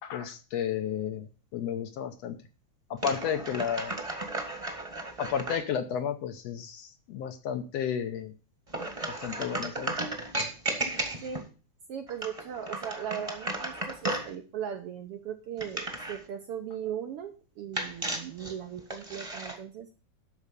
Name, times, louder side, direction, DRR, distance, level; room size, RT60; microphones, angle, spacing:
voice 1, 0.0-2.4 2.9-3.9 5.2-8.3 9.1-10.0, left 8 dB, 70° left, 9 dB, 1.8 m, -32 dB
sound 1, 3.0-5.6 8.7-11.5 12.1-14.3 15.6-16.2 17.7-19.6, right 2 dB, 15° right, 1.1 m, -35 dB
voice 2, 11.9-19.9, right 9 dB, 70° right, 6 dB, 1.5 m, -38 dB
12.5 x 4.7 x 6.9 m, 0.35 s
omnidirectional pair, 3.4 m